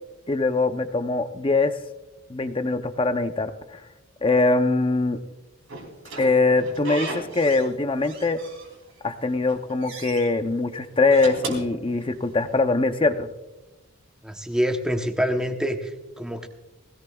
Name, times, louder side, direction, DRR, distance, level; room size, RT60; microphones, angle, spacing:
voice 1, 0.3-1.7 2.3-3.8 4.2-5.2 6.2-8.4 9.0-13.3, left 3 dB, 25° left, 9 dB, 0.6 m, -22 dB
Slam / Squeak, 5.7-7.7 8.0-9.0 9.4-10.3 10.9-12.5, right 3 dB, 70° right, 3.1 m, -37 dB
voice 2, 14.2-16.5, equal, 5° right, 5 dB, 0.9 m, -26 dB
20.0 x 17.0 x 2.3 m, 1.0 s
head